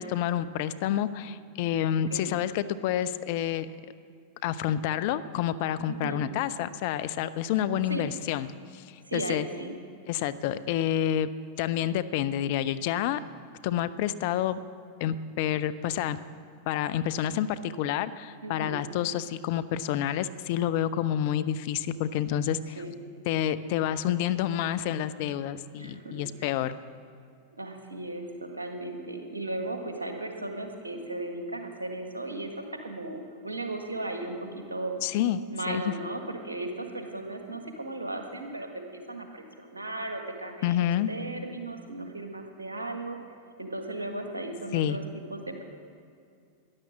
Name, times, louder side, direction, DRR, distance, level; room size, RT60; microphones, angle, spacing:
voice 1, 0.0-3.7 4.4-8.5 8.7-9.5 10.1-11.3 11.6-13.2 13.6-14.6 15.0-16.2 16.7-22.8 23.3-26.8 35.0-35.9 40.6-41.1 44.7-45.0, left 10 dB, 50° left, 13 dB, 0.6 m, -28 dB
voice 2, 5.9-6.3 7.9-8.0 9.1-9.7 18.4-18.8 22.8-22.9 25.7-26.5 27.5-32.5 32.8-35.0 35.5-43.2 43.6-45.0 45.3-45.6, right 2 dB, 80° right, 4 dB, 1.7 m, -36 dB
13.0 x 10.5 x 7.4 m, 2.3 s
figure-of-eight pair, 90°, 0 cm